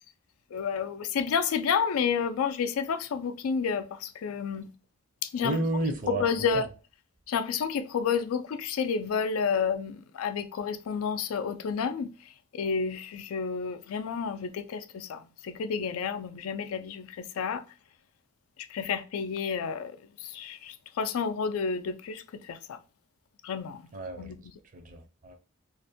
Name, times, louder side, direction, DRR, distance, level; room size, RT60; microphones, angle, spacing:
voice 1, 0.5-4.7 5.2-5.6 6.1-6.7 7.3-17.7 18.6-22.8 23.4-23.8 24.2-24.5, left 6 dB, 85° left, 0.4 m, -30 dB
voice 2, 5.4-6.2 6.5-6.6 23.9-24.3 24.7-25.4, right 2 dB, 40° right, 0.5 m, -31 dB
2.5 x 2.1 x 2.6 m
head